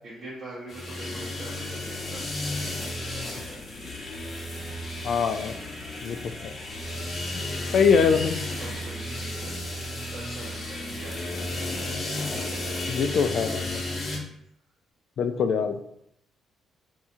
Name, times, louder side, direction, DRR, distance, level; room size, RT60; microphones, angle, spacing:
voice 1, 0.0-3.6 7.2-8.2 8.6-9.5 10.1-11.8 12.3-13.8, right 1 dB, 50° right, -7 dB, 1.0 m, -43 dB
sound 1, 0.7-14.2, left 1 dB, 40° left, 1.0 m, -33 dB
voice 2, 5.0-5.5 6.0-6.2 6.4-6.5 7.7-8.3 12.9-13.8 15.2-15.8, left 6 dB, 65° left, 8 dB, 0.3 m, -23 dB
2.7 x 2.4 x 4.2 m, 0.73 s
cardioid pair, 90°, 0 cm